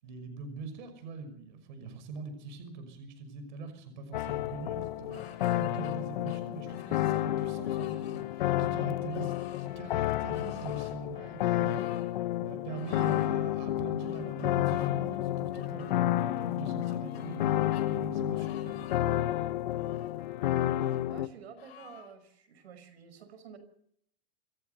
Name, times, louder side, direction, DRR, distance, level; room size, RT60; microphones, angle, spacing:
voice 1, 0.0-5.1 5.6-12.0 12.4-16.0 16.4-18.9, right 4 dB, 50° right, 8 dB, 5.9 m, -43 dB
sound 1, 4.1-21.3, left 13 dB, 50° left, 1.1 m, -31 dB
sound 2, 5.1-6.0 6.3-7.3 7.6-8.3 9.1-9.7 10.3-11.0 11.6-12.1 12.7-13.3 14.0-14.9 15.5-15.9 16.6-17.5 17.7-17.9 18.3-19.1 19.7-20.2 20.8-21.0 21.6-22.2, left 10 dB, 80° left, 7.4 m, -53 dB
voice 2, 21.1-23.6, right 7 dB, 85° right, 9 dB, 5.7 m, -50 dB
27.0 x 14.5 x 6.8 m, 0.68 s
supercardioid pair, 175°, 31 cm